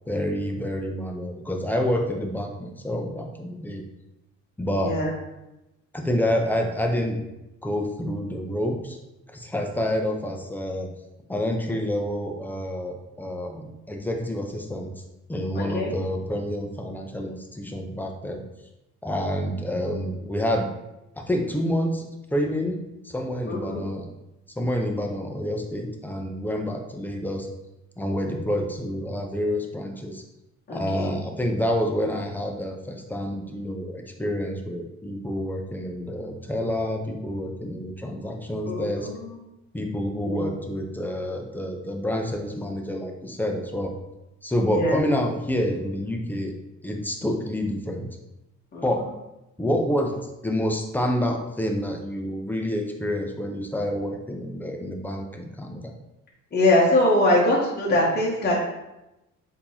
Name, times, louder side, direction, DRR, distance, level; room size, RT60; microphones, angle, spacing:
voice 1, 0.1-3.8 4.6-5.0 5.9-7.2 7.6-9.0 9.3-10.9 11.3-14.9 15.3-18.4 19.0-20.7 21.2-22.0 22.3-24.1 24.6-27.5 28.0-30.2 30.7-39.1 39.7-43.9 44.4-46.5 46.8-48.1 48.8-49.1 49.6-50.2 50.4-55.9, equal, 5° left, 2 dB, 0.5 m, -28 dB
voice 2, 4.8-5.1 15.5-15.9 23.5-23.8 30.7-31.2 38.6-39.2 40.2-40.5 44.7-45.0 48.7-48.8 56.5-58.6, left 1 dB, 35° left, -4 dB, 0.9 m, -22 dB
4.4 x 2.8 x 2.7 m, 0.94 s
cardioid pair, 90°, 30 cm